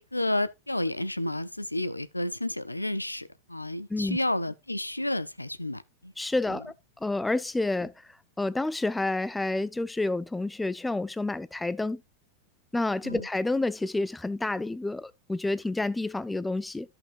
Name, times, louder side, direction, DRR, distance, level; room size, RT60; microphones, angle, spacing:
voice 1, 0.0-6.1 6.5-6.6 13.0-13.3, left 1 dB, 85° left, 0.4 m, -31 dB
voice 2, 6.2-6.7 7.0-7.9 8.4-12.0 12.7-16.9, left 2 dB, 5° left, 0.4 m, -29 dB
13.5 x 5.7 x 2.4 m
figure-of-eight pair, 90°, 0 cm